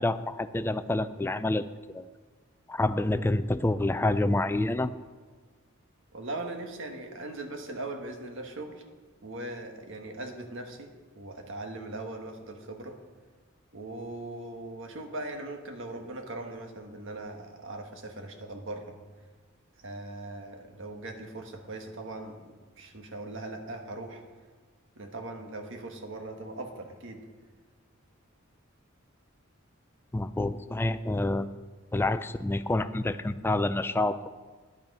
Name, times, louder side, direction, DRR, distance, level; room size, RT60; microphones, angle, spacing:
voice 1, 0.0-1.7 1.9-2.1 2.7-4.9 30.1-31.5 31.9-34.3, left 2 dB, 10° left, 11 dB, 0.4 m, -28 dB
voice 2, 6.1-8.8 9.2-12.9 13.7-19.0 19.8-24.2 24.9-27.2, right 2 dB, 65° right, 4 dB, 1.5 m, -40 dB
10.5 x 8.9 x 5.4 m, 1.5 s
head